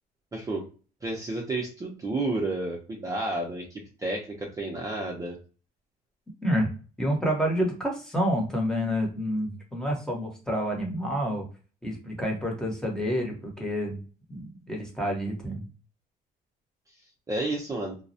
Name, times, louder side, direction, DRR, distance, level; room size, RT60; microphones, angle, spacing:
voice 1, 0.3-0.6 1.0-5.4 17.3-18.0, right 2 dB, 20° right, -1 dB, 0.6 m, -31 dB
voice 2, 7.0-11.4 11.8-14.0 14.3-15.6, equal, 5° left, -1 dB, 0.9 m, -28 dB
2.3 x 2.0 x 2.6 m, 0.37 s
cardioid pair, 110°, 17 cm